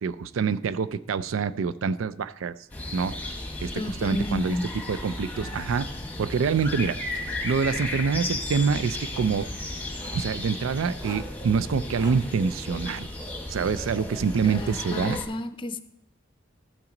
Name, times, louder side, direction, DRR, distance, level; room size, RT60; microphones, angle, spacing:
voice 1, 0.0-2.6 2.9-3.2 3.6-5.9 6.2-9.5 10.1-13.1 13.5-15.2, right 5 dB, 90° right, 0.4 m, -26 dB
sound 1, 2.7-15.2, left 2 dB, 10° left, 1.1 m, -35 dB
voice 2, 3.7-4.7 14.4-15.8, left 1 dB, 25° left, 0.5 m, -30 dB
Writing, 6.6-6.8 7.2-8.0 8.9-9.4 9.8-10.3 10.9-11.4 11.8-12.1, right 1 dB, 20° right, 1.9 m, -45 dB
13.5 x 5.9 x 3.9 m
head